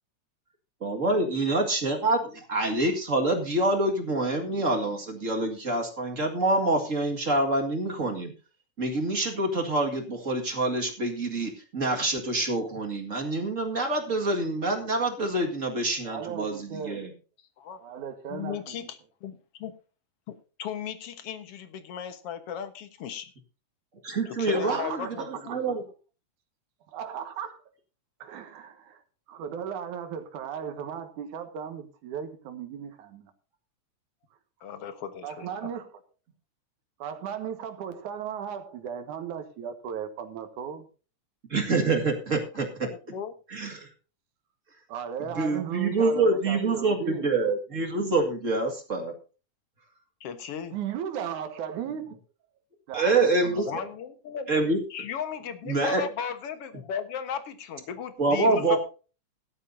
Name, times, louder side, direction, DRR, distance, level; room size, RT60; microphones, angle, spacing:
voice 1, 0.8-2.2 2.5-8.3 8.8-17.1 24.0-25.1 25.5-25.8 41.5-42.9 43.5-43.9 45.4-49.1 52.9-53.7 54.5-54.8 55.7-56.0 58.2-58.8, right 2 dB, 30° right, 1.9 m, -26 dB
voice 2, 16.0-17.1 17.8-18.9 24.5-25.8 26.9-27.6 28.2-29.0 29.3-33.3 35.2-35.9 37.0-40.9 44.9-47.3 50.7-52.2 52.9-53.9, right 8 dB, 75° right, 2.9 m, -36 dB
voice 3, 18.3-19.7 20.3-23.3 24.3-25.3 25.7-25.8 34.6-35.5 42.8-43.3 50.2-50.8 53.7-54.5 54.9-58.8, left 7 dB, 55° left, 2.0 m, -36 dB
16.5 x 12.5 x 2.7 m
omnidirectional pair, 3.6 m